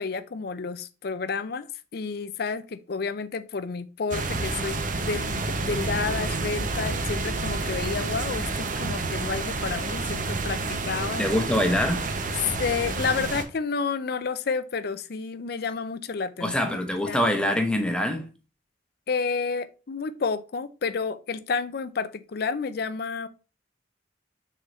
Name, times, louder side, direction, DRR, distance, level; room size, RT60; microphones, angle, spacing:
voice 1, 0.0-1.7 1.9-11.3 12.6-17.2 19.1-23.3, left 5 dB, 60° left, 0.5 m, -30 dB
sound 1, 4.1-13.4, right 3 dB, 45° right, 0.8 m, -29 dB
voice 2, 11.2-12.1 16.4-18.3, left 1 dB, 5° left, 1.0 m, -24 dB
6.3 x 3.8 x 4.2 m
head